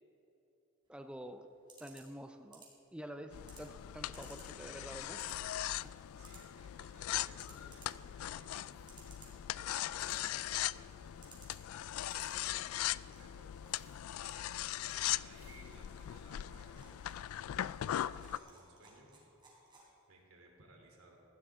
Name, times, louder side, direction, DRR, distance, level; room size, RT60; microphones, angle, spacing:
sound 1, 0.8-20.2, right 4 dB, 20° right, 3.6 m, -63 dB
voice 1, 0.9-1.5 1.8-5.4, equal, 5° right, 6 dB, 0.5 m, -48 dB
sound 2, 3.3-18.4, left 13 dB, 80° left, 0.3 m, -40 dB
sound 3, 5.7-16.3, left 5 dB, 50° left, 2.1 m, -74 dB
voice 2, 6.1-8.7 9.0-11.2 11.9-13.6 14.2-14.5 14.8-17.0 17.3-19.1 20.1-21.2, right 2 dB, 80° right, 0 dB, 3.2 m, -61 dB
19.0 x 15.0 x 3.7 m, 3.0 s
head